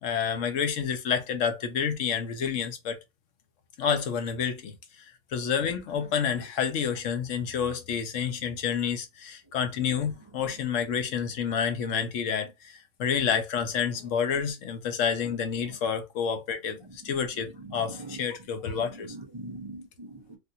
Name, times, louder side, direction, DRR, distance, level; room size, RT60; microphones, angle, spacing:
voice 1, 0.0-3.0 3.8-19.1, left 7 dB, 65° left, 0.9 m, -29 dB
voice 2, 17.9-18.2 18.7-20.4, right 2 dB, 40° right, 0.4 m, -42 dB
3.4 x 2.4 x 2.7 m
omnidirectional pair, 1.6 m